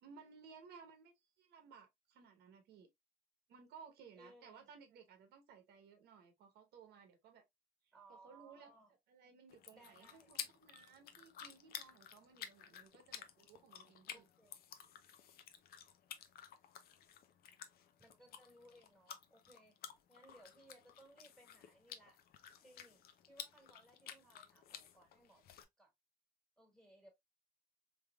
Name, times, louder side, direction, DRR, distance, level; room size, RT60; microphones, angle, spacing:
voice 1, 0.0-2.9 3.5-7.4 8.1-8.8 9.1-14.2, right 6 dB, 75° right, 1.0 m, -60 dB
voice 2, 4.1-4.7 7.9-8.9 9.7-10.3 14.1-14.6 18.0-19.8 20.1-22.2 22.6-25.9 26.6-27.1, right 1 dB, 5° left, 1.6 m, -64 dB
sound 1, 9.5-25.6, left 9 dB, 65° left, 0.6 m, -53 dB
3.4 x 3.4 x 2.2 m
cardioid pair, 110°, 17 cm